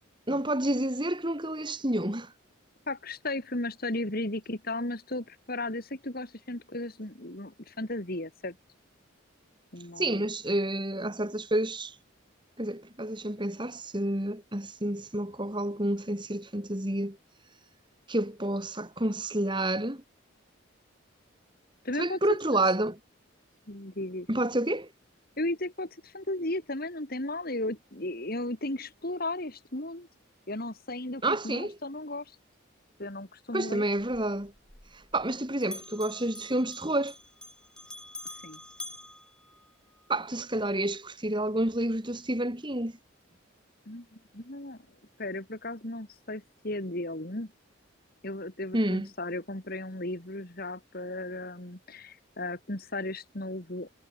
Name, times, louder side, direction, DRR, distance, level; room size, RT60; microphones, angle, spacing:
voice 1, 0.3-2.3 10.0-11.9 12.6-17.2 18.1-20.0 22.0-23.0 24.3-24.9 31.2-31.8 33.5-34.5 35.1-37.1 40.1-42.9 48.7-49.1, right 1 dB, 25° right, 3.5 m, -29 dB
voice 2, 2.9-8.5 9.7-10.2 21.8-22.6 23.7-24.3 25.4-30.1 30.5-32.2 33.0-33.8 38.4-38.6 43.9-44.8 45.2-47.5 48.2-53.9, left 2 dB, 45° left, 3.0 m, -35 dB
Bell, 34.0-35.4 35.6-40.1, left 1 dB, 5° left, 4.2 m, -46 dB
head